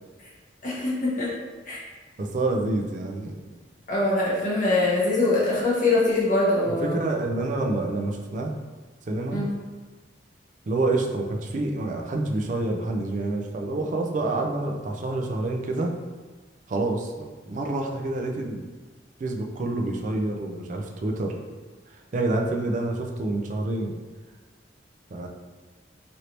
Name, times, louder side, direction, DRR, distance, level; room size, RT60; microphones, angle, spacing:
voice 1, 0.6-1.3 1.7-1.8 3.9-7.0 9.3-9.5, left 2 dB, 45° left, -8 dB, 1.1 m, -23 dB
voice 2, 2.2-3.4 6.7-8.5 9.1-9.4 10.7-15.9 16.7-18.6 19.2-21.3 22.1-23.9 25.1-25.3, right 2 dB, 45° right, 2 dB, 0.4 m, -27 dB
3.2 x 2.6 x 2.9 m, 1.3 s
head